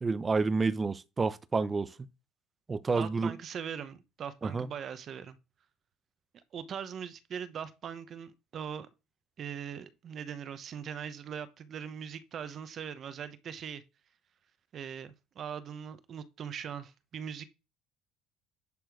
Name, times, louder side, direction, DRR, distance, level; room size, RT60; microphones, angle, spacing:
voice 1, 0.0-1.9 2.7-3.3 4.4-4.7, right 4 dB, 20° right, 0.6 m, -29 dB
voice 2, 2.9-5.4 6.5-8.9 9.4-13.8 14.7-17.4, right 8 dB, 40° right, 1.0 m, -41 dB
10.5 x 4.3 x 4.8 m
cardioid pair, 135°, 0 cm